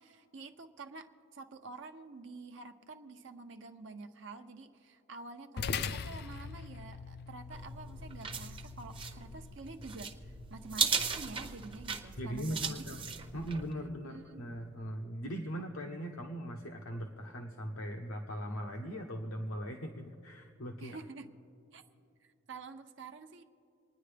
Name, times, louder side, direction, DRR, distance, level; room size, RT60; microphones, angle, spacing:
voice 1, 0.0-12.9 14.1-14.4 20.8-21.3 21.7-21.8 22.2-23.4, right 3 dB, 60° right, 6 dB, 0.6 m, -48 dB
sound 1, 5.6-14.2, left 6 dB, 50° left, 0.4 m, -44 dB
sound 2, 7.5-13.7, right 5 dB, 25° right, 0.7 m, -37 dB
voice 2, 12.2-13.0 13.3-21.0, equal, 85° left, 2 dB, 0.9 m, -40 dB
28.0 x 9.9 x 3.4 m, 2.5 s
head